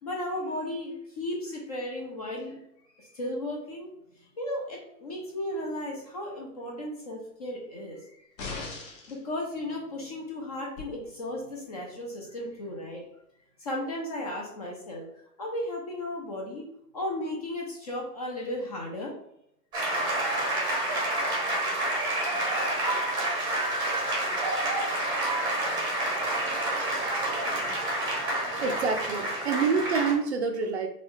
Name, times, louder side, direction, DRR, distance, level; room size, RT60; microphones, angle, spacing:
voice 1, 0.0-2.6 3.0-3.9 4.2-8.3 9.1-13.0 13.6-15.0 15.4-16.6 16.9-19.1, left 1 dB, 25° left, -1 dB, 0.4 m, -35 dB
sound 1, 8.4-9.2 10.8-10.9, left 4 dB, 50° left, 1.1 m, -38 dB
sound 2, 19.7-30.1, right 1 dB, 10° right, 0.7 m, -28 dB
voice 2, 28.4-30.9, right 5 dB, 45° right, 5 dB, 0.4 m, -27 dB
3.9 x 2.3 x 3.0 m, 0.78 s
figure-of-eight pair, 120°, 48 cm